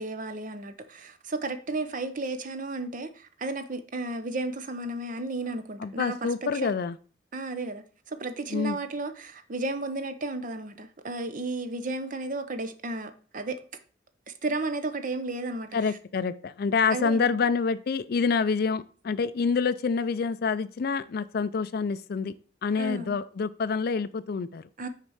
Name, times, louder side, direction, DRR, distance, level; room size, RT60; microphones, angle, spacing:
voice 1, 0.0-6.3 6.6-6.7 7.3-13.6 14.4-16.0 16.9-17.3 22.8-23.2 24.8-24.9, right 2 dB, 45° right, 0.8 m, -33 dB
voice 2, 5.8-7.0 8.5-8.8 15.7-22.3 22.6-24.7, left 5 dB, 55° left, 0.4 m, -27 dB
6.5 x 4.1 x 6.3 m
head